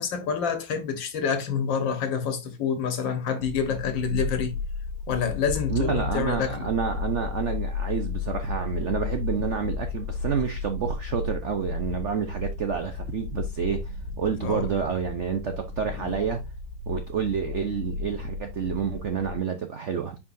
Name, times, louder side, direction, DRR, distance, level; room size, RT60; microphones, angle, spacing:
voice 1, 0.0-4.5 5.1-6.7 14.4-14.7, left 6 dB, 70° left, 2.0 m, -27 dB
sound 1, 3.4-19.4, left 4 dB, 50° left, 1.3 m, -33 dB
voice 2, 5.7-16.4 16.9-20.2, right 7 dB, 65° right, 0.7 m, -29 dB
8.4 x 4.9 x 2.6 m
omnidirectional pair, 2.2 m